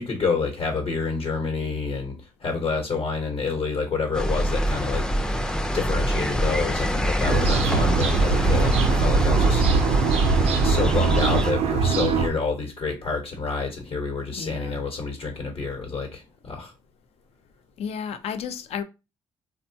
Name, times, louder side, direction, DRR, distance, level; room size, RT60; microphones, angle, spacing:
voice 1, 0.0-5.3 5.7-10.0 10.6-16.7, left 4 dB, 55° left, 0.9 m, -28 dB
sound 1, 4.1-11.5, equal, 5° left, 0.4 m, -25 dB
sound 2, 7.2-12.3, right 5 dB, 75° right, 0.5 m, -22 dB
voice 2, 14.4-14.8 17.8-18.8, left 7 dB, 75° left, 0.5 m, -32 dB
3.4 x 2.1 x 2.7 m
cardioid pair, 70°, 11 cm